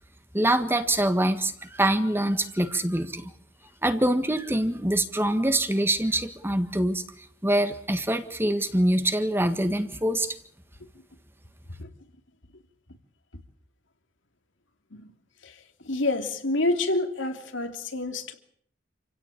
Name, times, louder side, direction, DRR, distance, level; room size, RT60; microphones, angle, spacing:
voice 1, 0.3-3.3 3.8-7.0 7.4-10.3, right 1 dB, 10° right, 1.6 m, -24 dB
voice 2, 15.9-18.3, left 2 dB, 85° left, 3.2 m, -28 dB
28.0 x 17.0 x 8.7 m
head